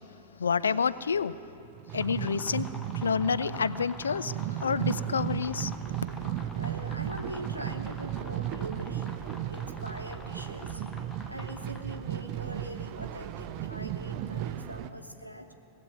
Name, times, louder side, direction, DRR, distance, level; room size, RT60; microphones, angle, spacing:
voice 1, 0.4-1.4 1.9-2.7 3.0-5.7, left 6 dB, 70° left, 16 dB, 0.4 m, -28 dB
sound 1, 1.6-14.9, right 11 dB, 45° right, 0.5 m, -35 dB
sound 2, 1.8-12.1, left 2 dB, 15° left, 1.0 m, -48 dB
sound 3, 5.2-14.9, right 5 dB, 20° right, 2.8 m, -48 dB
voice 2, 6.5-9.1 9.5-10.9 11.3-15.5, right 1 dB, 90° right, 5 dB, 0.8 m, -43 dB
19.0 x 7.6 x 9.4 m, 3.0 s
figure-of-eight pair, 90°, 0 cm